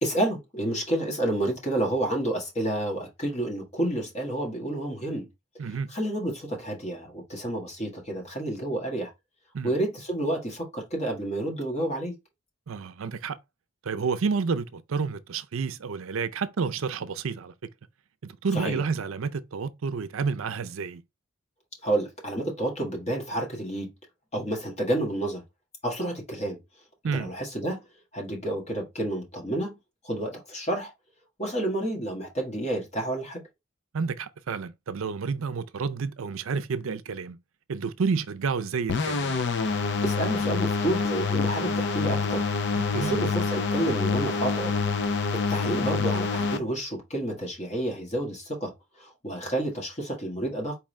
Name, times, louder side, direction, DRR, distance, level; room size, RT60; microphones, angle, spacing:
voice 1, 0.0-5.3 5.9-9.1 9.6-12.1 18.5-18.8 21.8-23.9 24.3-25.4 25.8-26.6 27.1-27.8 28.1-29.8 30.0-30.9 31.4-33.4 40.0-42.5 43.0-44.7 45.3-50.8, right 1 dB, 30° left, 1.6 m, -30 dB
voice 2, 5.6-5.9 9.5-9.7 12.7-13.4 13.8-17.5 18.2-21.0 27.0-27.3 33.9-37.4 37.7-39.4 42.7-43.2, right 5 dB, 80° right, 0.5 m, -30 dB
sound 1, 38.9-46.6, left 4 dB, 55° left, 0.5 m, -26 dB
4.7 x 3.6 x 3.1 m
head